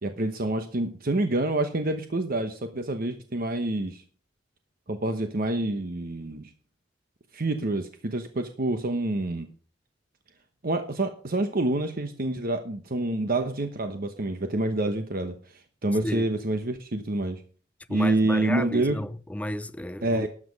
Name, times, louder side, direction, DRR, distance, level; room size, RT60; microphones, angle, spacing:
voice 1, 0.0-4.0 4.9-6.5 7.3-9.5 10.6-17.4 17.9-19.0 20.0-20.3, right 2 dB, 50° right, 1.0 m, -27 dB
voice 2, 17.9-20.3, left 1 dB, 10° left, 0.4 m, -32 dB
12.5 x 7.6 x 5.3 m
head